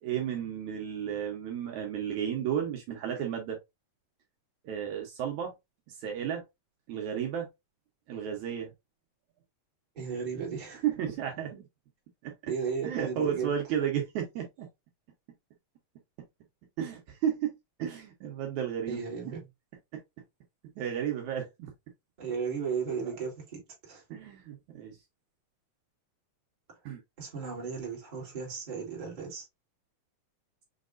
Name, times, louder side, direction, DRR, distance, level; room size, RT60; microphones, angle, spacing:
voice 1, 0.0-3.6 4.6-5.5 5.9-6.4 6.9-7.5 8.1-8.7 10.8-11.6 12.2-12.3 12.8-14.7 16.8-17.5 17.8-19.0 19.9-20.0 20.8-21.7 23.1-23.2 24.1-25.0 26.9-27.0, right 9 dB, 70° right, 2.1 m, -33 dB
voice 2, 9.9-10.8 12.5-13.5 18.9-19.5 22.2-24.0 27.2-29.4, right 6 dB, 20° right, 1.6 m, -35 dB
6.4 x 2.9 x 2.5 m
omnidirectional pair, 3.7 m